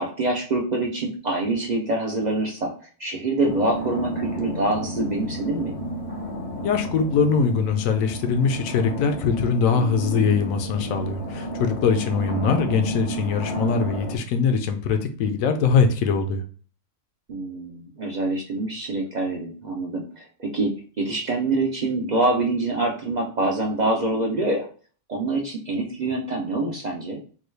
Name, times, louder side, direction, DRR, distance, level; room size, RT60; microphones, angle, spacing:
voice 1, 0.0-5.8 12.3-12.7 17.3-24.7 25.1-27.2, right 2 dB, 65° right, 0 dB, 0.4 m, -25 dB
sound 1, 3.4-14.2, equal, 40° left, 0.5 m, -32 dB
voice 2, 6.6-16.4, left 5 dB, 75° left, 6 dB, 1.0 m, -22 dB
3.8 x 2.3 x 3.1 m, 0.41 s
omnidirectional pair, 1.5 m